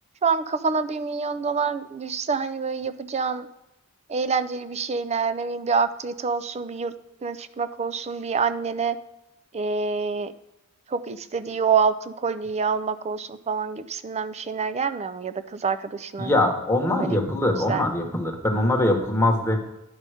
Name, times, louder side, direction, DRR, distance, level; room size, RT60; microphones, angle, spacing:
voice 1, 0.2-3.5 4.1-6.9 7.2-9.0 9.5-10.3 10.9-16.3 17.0-17.2 17.7-17.8, right 5 dB, 30° right, 12 dB, 0.4 m, -26 dB
voice 2, 16.2-19.6, left 1 dB, 10° left, 1 dB, 1.2 m, -22 dB
10.5 x 5.3 x 4.9 m, 0.92 s
head